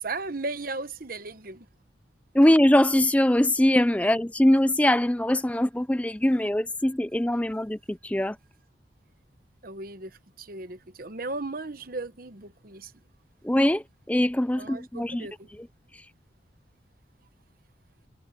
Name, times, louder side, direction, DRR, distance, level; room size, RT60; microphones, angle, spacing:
voice 1, 0.0-1.7 9.6-12.9 14.6-15.5, right 3 dB, 45° right, 1.1 m, -36 dB
voice 2, 2.3-8.4 13.4-15.3 15.6-15.7, left 1 dB, 5° left, 0.4 m, -22 dB
head